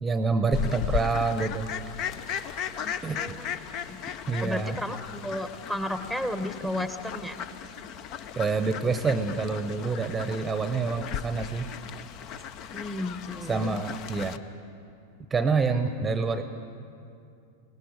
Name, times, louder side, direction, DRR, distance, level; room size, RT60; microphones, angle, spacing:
voice 1, 0.0-1.7 3.0-3.4 4.3-4.8 8.4-11.7 13.5-14.4 15.3-16.4, right 4 dB, 15° right, 10 dB, 1.0 m, -27 dB
Fowl, 0.5-14.4, left 8 dB, 40° left, 0.8 m, -36 dB
voice 2, 2.8-4.0 4.4-7.5 12.7-13.8, left 1 dB, 5° left, 9 dB, 1.2 m, -34 dB
28.5 x 19.0 x 4.9 m, 2.5 s
figure-of-eight pair, 90°, 0 cm